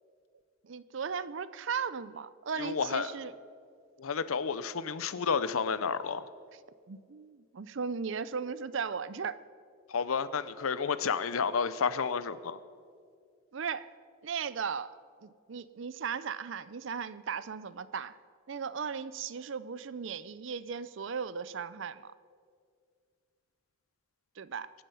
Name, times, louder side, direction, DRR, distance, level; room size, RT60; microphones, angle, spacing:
voice 1, 0.6-3.3 6.9-9.4 13.5-13.9 14.2-14.9 15.2-18.2 18.5-22.1 24.4-24.7, right 6 dB, 65° right, 16 dB, 0.5 m, -37 dB
voice 2, 2.6-3.1 4.0-6.2 9.9-12.6, left 5 dB, 85° left, 15 dB, 0.7 m, -31 dB
22.5 x 9.2 x 5.6 m, 2.2 s
head